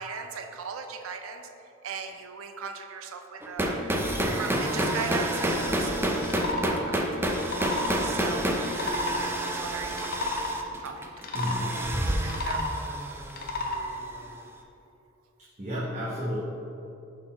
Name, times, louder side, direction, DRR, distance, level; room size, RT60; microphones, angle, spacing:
voice 1, 0.0-1.5 1.8-3.8 4.4-7.0 7.5-7.6 8.0-10.3 10.8-11.1 12.2-12.6, right 5 dB, 80° right, 7 dB, 0.5 m, -38 dB
sound 1, 3.4-14.2, right 1 dB, 10° right, 0.4 m, -29 dB
sound 2, 6.2-6.7 7.3-7.9 8.6-9.2 9.9-10.5 11.2-11.6 12.2-12.8 13.3-13.8, left 2 dB, 50° left, 0.7 m, -31 dB
voice 2, 11.3-12.0 15.6-16.4, equal, 35° right, -8 dB, 0.9 m, -32 dB
6.4 x 3.9 x 4.3 m, 2.8 s
head